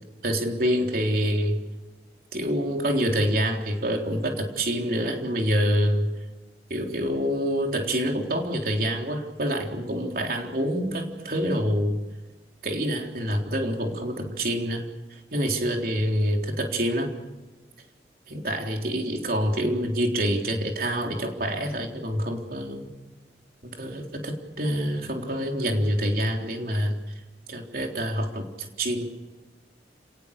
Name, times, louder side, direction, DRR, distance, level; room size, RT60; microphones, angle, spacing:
voice 1, 0.2-1.6 2.3-6.1 6.7-12.0 12.6-14.9 15.3-17.1 18.3-22.9 23.6-27.0 27.5-28.4 28.8-29.0, equal, 55° right, 2 dB, 3.8 m, -26 dB
30.0 x 19.0 x 6.7 m, 1.2 s
head